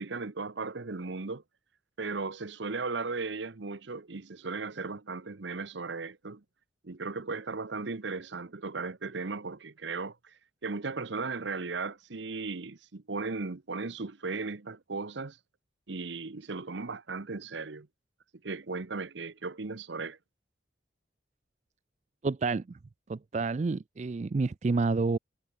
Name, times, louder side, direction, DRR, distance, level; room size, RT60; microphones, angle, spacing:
voice 1, 0.0-1.4 2.0-6.4 6.8-15.4 15.9-17.9 18.4-20.2, right 4 dB, 75° right, 0.9 m, -36 dB
voice 2, 22.2-22.8 23.1-25.2, right 3 dB, 35° right, 0.3 m, -29 dB
head